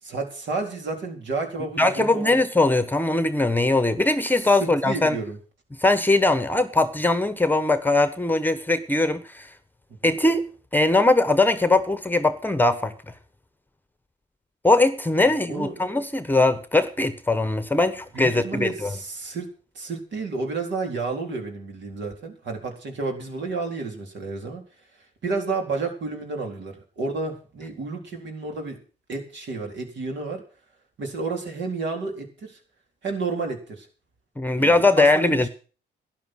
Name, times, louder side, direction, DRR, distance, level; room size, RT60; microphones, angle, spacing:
voice 1, 0.0-2.4 4.6-5.4 10.0-10.2 15.2-15.8 18.1-19.5 19.7-24.6 25.2-28.8 29.1-30.4 31.0-32.6 33.0-33.9 34.5-35.5, right 3 dB, 65° right, 2 dB, 4.2 m, -31 dB
voice 2, 1.8-5.2 5.8-9.5 10.0-12.9 14.6-18.9 34.4-35.5, left 2 dB, 10° left, 12 dB, 1.1 m, -21 dB
12.5 x 10.5 x 6.4 m, 0.39 s
cardioid pair, 90°, 20 cm